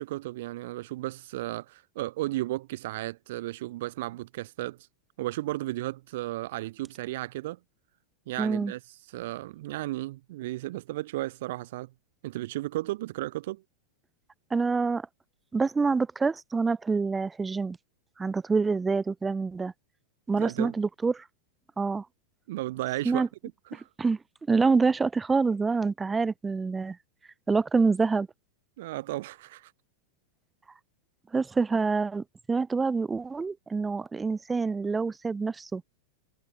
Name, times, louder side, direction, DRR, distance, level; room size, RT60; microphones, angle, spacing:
voice 1, 0.0-4.9 5.2-7.6 8.3-8.8 9.1-11.9 12.2-13.6 20.4-20.8 22.5-23.3 23.7-23.8 28.8-29.7, right 17 dB, 55° right, 0.8 m, -34 dB
voice 2, 8.4-8.7 14.5-15.1 15.5-17.8 18.2-19.7 20.3-21.2 21.8-22.1 23.0-23.3 24.0-24.2 24.5-27.0 27.5-28.3 31.3-35.8, right 4 dB, 15° right, 0.3 m, -26 dB
figure-of-eight pair, 90°, 0 cm